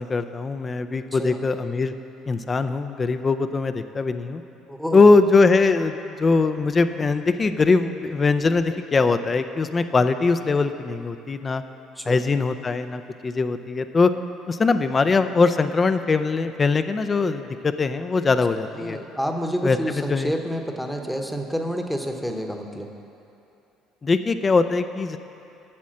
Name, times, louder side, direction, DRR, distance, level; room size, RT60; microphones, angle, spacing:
voice 1, 0.0-1.9 2.3-4.4 4.9-11.6 12.1-14.1 14.5-19.0 19.6-20.3 24.0-25.2, left 4 dB, 30° left, 10 dB, 0.4 m, -21 dB
voice 2, 4.7-5.0 12.0-12.2 18.8-22.9, equal, ahead, 4 dB, 1.0 m, -29 dB
8.6 x 7.1 x 6.4 m, 2.8 s
supercardioid pair, 80°, 0 cm